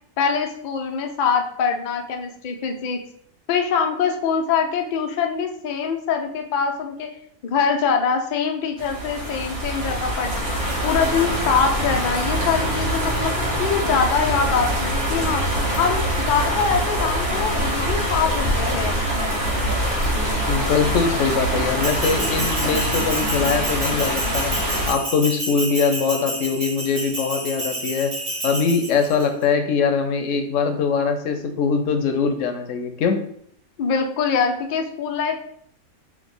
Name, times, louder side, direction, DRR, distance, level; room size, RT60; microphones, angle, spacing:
voice 1, 0.2-3.0 3.5-7.1 7.4-10.5 10.8-13.3 13.6-15.4 15.8-19.0 33.8-35.4, left 6 dB, 90° left, 4 dB, 0.4 m, -23 dB
sound 1, 8.8-24.9, equal, 30° right, 1.5 m, -24 dB
voice 2, 20.5-24.5 24.9-28.1 28.4-33.2, left 5 dB, 65° left, 7 dB, 0.9 m, -22 dB
Bell, 21.8-29.2, right 1 dB, 45° right, 1.6 m, -30 dB
3.9 x 3.0 x 3.7 m, 0.65 s
omnidirectional pair, 1.5 m